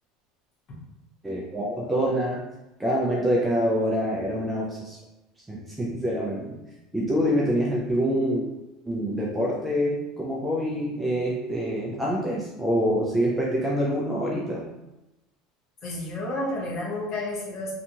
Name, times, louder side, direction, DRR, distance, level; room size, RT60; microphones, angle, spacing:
voice 1, 1.2-2.4 2.8-5.0 5.5-6.6 6.9-8.4 8.9-14.6, equal, 5° right, -4 dB, 0.3 m, -26 dB
voice 2, 15.8-17.7, left 1 dB, 35° left, -4 dB, 0.9 m, -31 dB
2.6 x 2.3 x 2.7 m, 0.99 s
cardioid pair, 170°, 0 cm